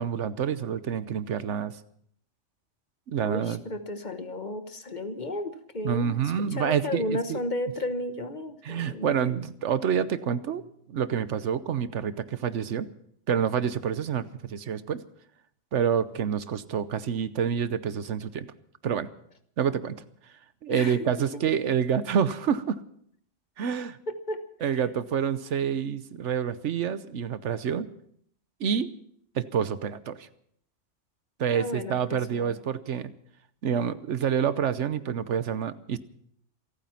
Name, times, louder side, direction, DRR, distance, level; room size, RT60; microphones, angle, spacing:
voice 1, 0.0-1.8 3.1-3.6 5.8-7.4 8.6-10.6 10.9-12.9 13.3-15.0 15.7-18.5 18.8-19.1 19.6-20.0 20.6-22.8 23.6-24.0 24.6-27.9 28.6-28.9 29.3-30.3 31.4-33.1 33.6-36.0, right 8 dB, 75° right, 14 dB, 1.2 m, -27 dB
voice 2, 3.2-9.4 20.7-21.1 24.1-24.4 24.7-24.8 31.5-32.6, left 1 dB, 40° left, 9 dB, 1.2 m, -33 dB
27.5 x 9.3 x 5.7 m, 0.65 s
omnidirectional pair, 1.2 m